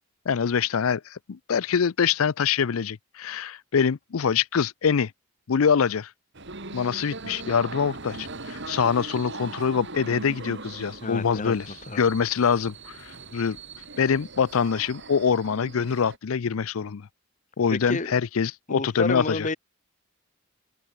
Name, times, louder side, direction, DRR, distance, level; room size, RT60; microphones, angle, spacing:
voice 1, 0.3-5.1 5.5-6.1 6.7-11.7 12.0-13.6 14.0-17.1 17.6-19.5, left 6 dB, 75° left, 0.5 m, -24 dB
sound 1, 6.3-16.2, right 3 dB, 55° right, 3.5 m, -40 dB
voice 2, 11.0-12.0 17.7-18.1 18.7-19.6, left 2 dB, 35° left, 1.6 m, -30 dB
open air
head